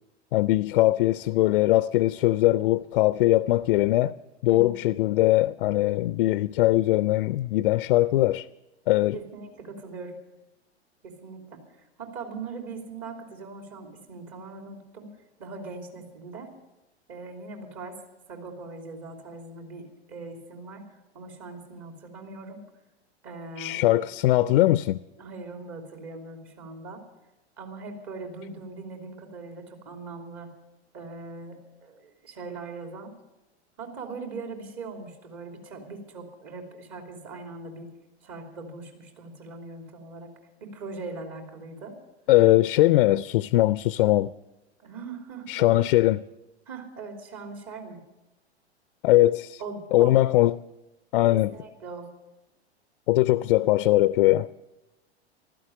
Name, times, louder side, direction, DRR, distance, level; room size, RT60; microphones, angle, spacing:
voice 1, 0.3-4.1 4.4-8.5 8.9-9.2 23.6-25.0 42.3-44.3 45.5-46.2 49.0-49.6 49.9-50.5 51.1-51.6 53.1-54.5, left 16 dB, 50° left, 0.5 m, -21 dB
voice 2, 9.1-10.2 11.0-16.5 17.1-18.0 18.3-22.6 23.2-23.9 25.2-27.0 27.6-30.5 30.9-33.1 33.8-37.9 38.2-40.3 40.6-42.0 44.8-45.8 46.7-48.0 49.6-50.2 51.3-52.1, right 3 dB, 45° right, 3.1 m, -40 dB
15.5 x 12.5 x 6.8 m
figure-of-eight pair, 95°, 33 cm